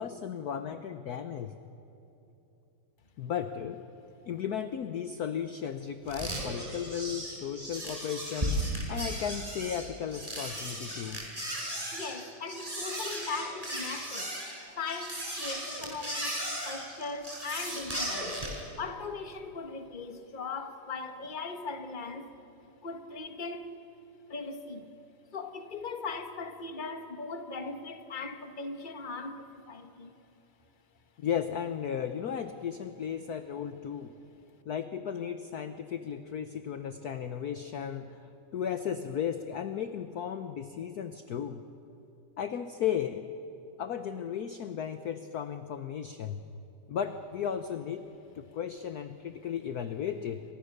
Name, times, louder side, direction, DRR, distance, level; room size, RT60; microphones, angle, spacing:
voice 1, 0.0-1.5 3.2-3.8 4.2-11.2 31.2-34.1 34.7-38.3 38.5-41.6 42.4-43.3 43.8-46.4 46.9-48.0 48.3-50.4, left 8 dB, 60° left, 9 dB, 1.1 m, -35 dB
sound 1, 6.1-18.6, right 1 dB, 15° right, 5.9 m, -36 dB
voice 2, 11.9-14.3 14.8-16.4 16.6-18.4 18.8-22.3 22.8-23.7 24.3-24.9 25.3-30.1, left 4 dB, 25° left, 7 dB, 1.3 m, -39 dB
29.5 x 25.0 x 6.7 m, 2.9 s
omnidirectional pair, 2.4 m